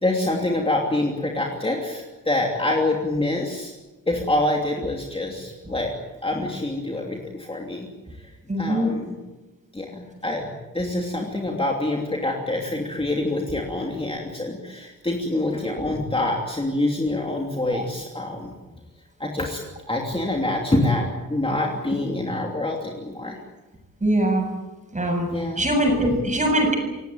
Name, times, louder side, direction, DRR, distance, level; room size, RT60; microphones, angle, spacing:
voice 1, 0.0-3.7 4.1-5.9 6.2-7.9 8.5-9.2 9.7-18.5 19.2-19.6 19.9-23.4 25.3-25.6 25.9-26.1, left 2 dB, 15° left, 0 dB, 2.9 m, -26 dB
voice 2, 8.5-8.9 17.7-17.8 24.0-24.5 24.9-25.3 25.6-26.7, right 1 dB, 20° right, 2 dB, 7.4 m, -22 dB
28.5 x 17.5 x 9.3 m, 1.1 s
wide cardioid pair, 170°, 34 cm